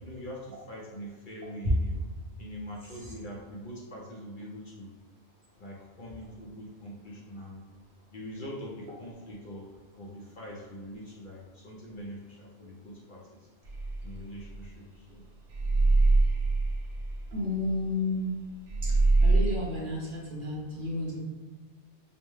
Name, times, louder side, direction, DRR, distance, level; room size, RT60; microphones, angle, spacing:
voice 1, 0.0-2.0 2.4-4.9 5.6-7.7 8.1-9.7 10.0-13.5 14.0-15.2, equal, 50° left, -3 dB, 0.7 m, -43 dB
sound 1, 13.6-15.1 15.5-18.4 18.7-19.6, right 3 dB, 80° right, 1.1 m, -24 dB
voice 2, 17.3-18.3 18.8-18.9 19.2-21.2, left 2 dB, 50° right, -4 dB, 0.9 m, -32 dB
5.2 x 2.1 x 3.1 m, 1.4 s
omnidirectional pair, 1.2 m